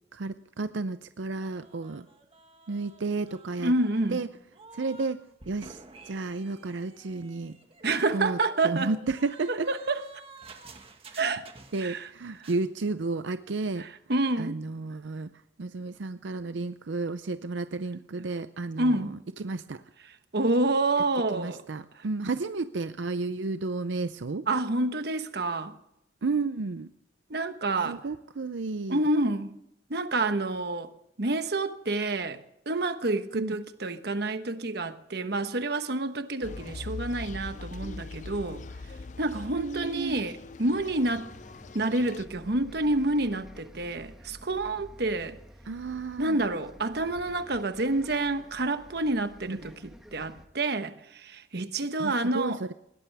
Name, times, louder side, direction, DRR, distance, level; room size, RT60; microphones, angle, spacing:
voice 1, 0.1-2.1 2.7-3.7 4.1-4.3 4.7-7.6 8.1-9.7 11.7-13.9 14.4-15.3 15.6-19.8 21.3-24.4 26.2-26.9 27.8-29.0 33.3-33.6 39.5-40.2 45.7-46.4 49.5-49.6 52.0-52.7, right 3 dB, 90° right, 0.6 m, -32 dB
sound 1, 1.4-5.1 5.4-12.1 12.3-12.7, right 3 dB, 30° right, 1.7 m, -51 dB
voice 2, 3.6-4.2 7.8-8.9 9.5-10.1 11.2-11.5 11.8-12.1 12.4-12.5 13.8-14.6 18.8-19.2 20.3-21.6 24.5-25.7 27.3-28.0 28.9-29.6 29.9-30.9 31.2-32.4 32.7-38.6 39.2-41.3 41.7-45.4 46.2-49.7 50.1-52.6, right 2 dB, 60° right, 1.2 m, -28 dB
sound 2, 36.4-42.2, left 3 dB, 40° left, 0.5 m, -42 dB
Bus, 40.8-50.5, equal, ahead, 1.7 m, -51 dB
20.5 x 17.5 x 3.5 m
head